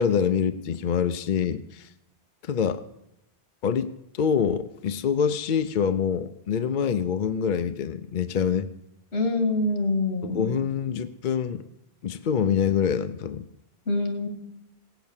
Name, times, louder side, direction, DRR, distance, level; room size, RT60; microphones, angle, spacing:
voice 1, 0.0-1.9 2.4-2.8 3.6-8.7 10.2-11.6 12.0-13.5, left 7 dB, 55° left, 10 dB, 0.7 m, -25 dB
voice 2, 9.1-10.4 13.9-14.3, left 2 dB, 85° left, 4 dB, 2.4 m, -25 dB
17.0 x 8.2 x 7.2 m, 0.84 s
omnidirectional pair, 1.1 m